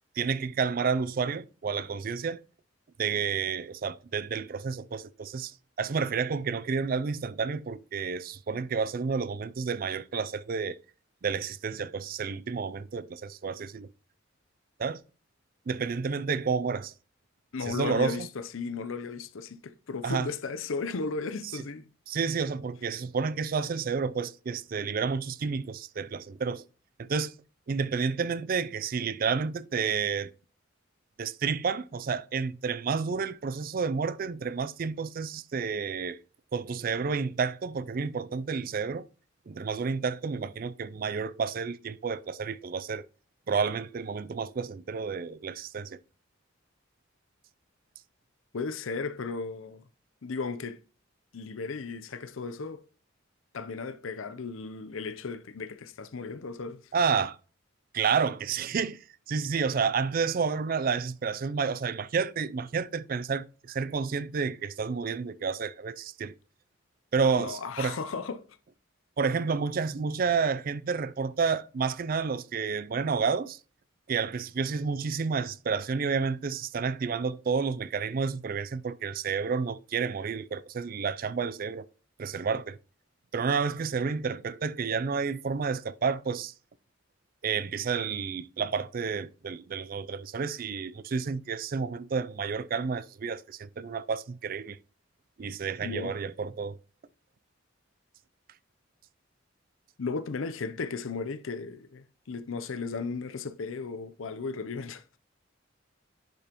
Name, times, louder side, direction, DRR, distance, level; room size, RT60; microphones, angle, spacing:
voice 1, 0.2-2.4 3.0-10.8 11.2-13.9 14.8-15.0 15.7-16.9 17.7-18.3 20.0-20.3 21.5-21.6 22.1-26.6 27.0-27.3 27.7-30.3 31.2-36.2 36.5-39.1 39.5-43.1 43.5-46.0 56.9-57.4 57.9-59.0 59.3-66.3 67.1-68.0 69.2-73.6 74.1-81.9 82.2-82.8 83.3-86.5 87.4-94.8 95.4-96.8, right 5 dB, 45° right, 0.4 m, -30 dB
voice 2, 17.5-21.9 48.5-49.8 50.2-50.8 51.3-52.8 53.5-56.8 67.4-68.4 95.8-96.1 100.0-105.0, left 4 dB, 80° left, 0.6 m, -35 dB
10.5 x 5.3 x 3.0 m
head